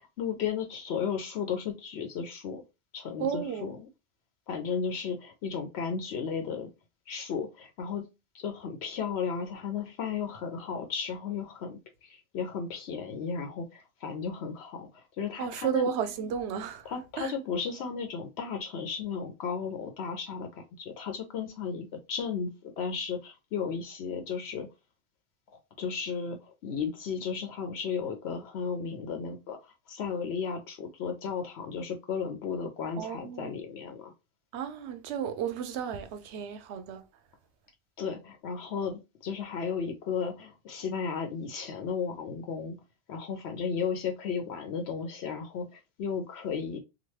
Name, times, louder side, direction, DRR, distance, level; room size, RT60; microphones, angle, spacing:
voice 1, 0.0-2.6 2.9-3.7 4.5-6.7 7.1-8.0 8.3-15.9 16.9-22.5 22.8-24.7 25.5-29.6 29.9-34.1 38.0-42.8 43.1-46.8, left 6 dB, 75° left, 0.9 m, -34 dB
voice 2, 3.2-3.7 15.4-16.9 17.2-17.3 33.0-33.5 34.5-37.0, right 8 dB, 85° right, 0.9 m, -33 dB
3.0 x 2.2 x 3.1 m
omnidirectional pair, 1.1 m